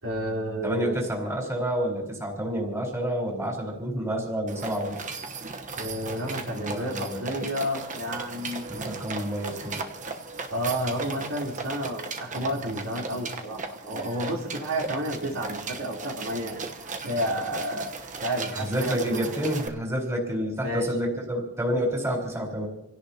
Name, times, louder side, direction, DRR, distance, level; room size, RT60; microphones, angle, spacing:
voice 1, 0.0-1.0 5.8-8.6 10.5-16.5 17.0-19.2 20.6-20.9, equal, 70° right, -2 dB, 3.7 m, -31 dB
voice 2, 0.6-5.1 6.5-7.2 8.7-9.8 18.5-22.7, equal, 15° right, -1 dB, 4.4 m, -29 dB
sound 1, 4.5-19.7, right 4 dB, 35° right, 1.1 m, -37 dB
28.5 x 17.0 x 2.9 m, 0.95 s
head